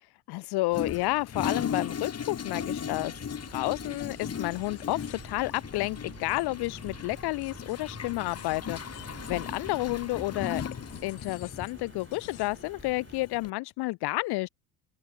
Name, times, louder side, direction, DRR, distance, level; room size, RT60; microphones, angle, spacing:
voice 1, 0.3-3.1 3.5-10.6 11.0-14.5, left 21 dB, 55° left, 0.6 m, -31 dB
Toilet flush, 0.7-13.5, left 7 dB, 30° left, 1.8 m, -37 dB
sound 1, 2.4-13.3, right 4 dB, 25° right, 4.3 m, -50 dB
sound 2, 2.9-9.9 10.4-12.7, left 28 dB, 70° left, 1.9 m, -55 dB
open air
hypercardioid pair, 60°, 49 cm